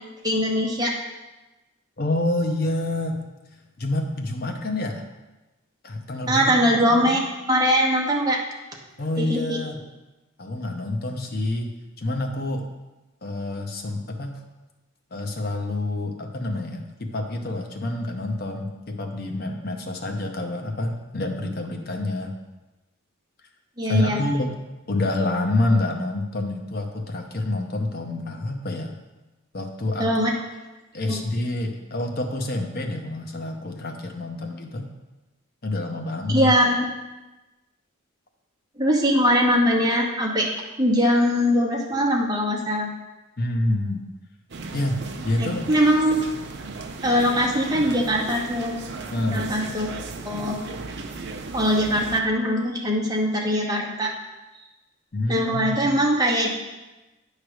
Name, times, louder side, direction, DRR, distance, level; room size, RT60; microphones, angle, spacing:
voice 1, 0.2-0.9 6.3-7.2 7.5-8.4 9.2-9.6 23.8-24.2 30.0-30.3 31.1-31.2 36.3-36.9 38.8-40.5 40.8-42.9 45.4-46.2 47.0-48.8 49.3-49.9 50.2-50.6 51.5-54.1 55.3-56.5, equal, 20° right, -1 dB, 1.0 m, -21 dB
voice 2, 2.0-3.2 3.8-5.1 5.8-7.2 9.0-9.8 10.4-11.7 12.0-12.7 13.2-14.4 15.1-22.3 23.8-24.6 24.9-29.0 29.5-30.2 30.9-34.9 35.6-36.5 43.4-44.0 44.7-45.7 49.1-49.4 55.1-55.8, left 2 dB, 45° left, 3 dB, 0.7 m, -27 dB
sound 1, 44.5-52.2, right 3 dB, 55° right, 0.6 m, -36 dB
9.6 x 3.3 x 6.2 m, 1.1 s
head